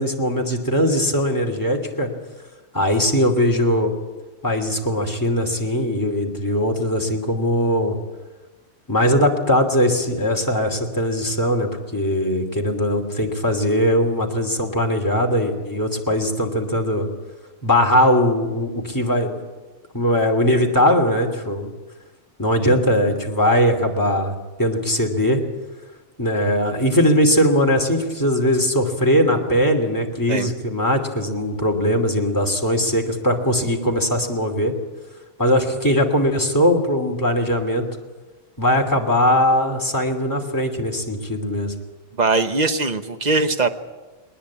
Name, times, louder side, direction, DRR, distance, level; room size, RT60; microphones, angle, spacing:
voice 1, 0.0-2.1 2.7-3.9 4.4-8.0 8.9-17.1 17.6-19.4 19.9-21.7 22.4-25.4 26.2-34.7 35.4-37.8 38.6-41.7, equal, 15° left, 2 dB, 2.8 m, -20 dB
voice 2, 42.2-43.7, right 3 dB, 35° right, 8 dB, 1.2 m, -20 dB
20.5 x 19.5 x 8.6 m, 1.2 s
omnidirectional pair, 1.3 m